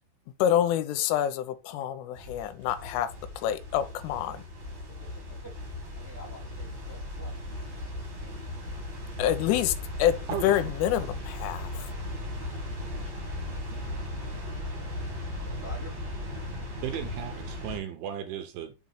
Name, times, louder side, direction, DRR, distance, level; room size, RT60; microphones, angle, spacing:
voice 1, 0.4-4.4 9.2-11.9, left 11 dB, 85° left, 3.1 m, -27 dB
sound 1, 2.1-17.8, left 1 dB, 60° right, 1.8 m, -37 dB
voice 2, 4.9-5.5 5.9-7.4 7.7-8.3 13.0-13.4 14.8-15.9, right 1 dB, 40° left, 0.8 m, -50 dB
voice 3, 13.7-14.1 16.8-18.7, right 10 dB, 80° right, 2.9 m, -36 dB
7.3 x 3.1 x 5.6 m
omnidirectional pair, 5.8 m